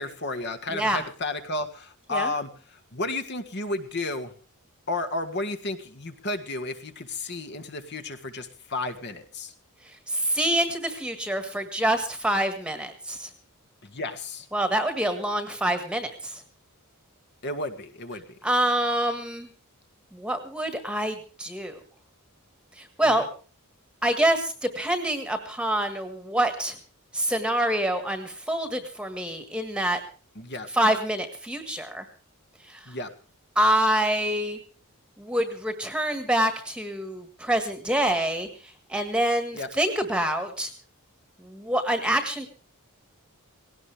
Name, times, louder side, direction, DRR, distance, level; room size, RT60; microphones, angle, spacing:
voice 1, 0.0-4.3 4.9-9.5 13.8-14.5 17.4-18.4 23.0-23.3 30.4-30.7 32.9-33.1 39.5-39.7, left 2 dB, 50° left, 8 dB, 1.8 m, -32 dB
voice 2, 10.1-13.3 14.5-16.4 18.4-19.5 20.1-21.8 22.8-23.3 24.0-26.7 27.1-30.0 30.7-32.0 32.7-32.9 33.5-34.6 35.2-38.5 38.9-40.7 41.4-42.5, right 1 dB, 5° right, 8 dB, 1.6 m, -26 dB
19.0 x 17.5 x 3.4 m, 0.37 s
head